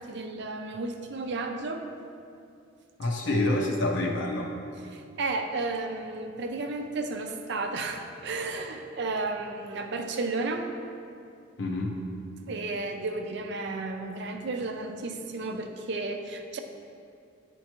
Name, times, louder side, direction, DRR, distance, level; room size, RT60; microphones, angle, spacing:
voice 1, 0.0-1.9 3.2-3.4 4.9-10.7 12.5-16.6, right 3 dB, 60° right, 5 dB, 0.5 m, -33 dB
voice 2, 3.0-4.6 11.6-12.0, left 2 dB, 65° left, 0 dB, 0.6 m, -27 dB
9.6 x 4.5 x 2.9 m, 2.5 s
head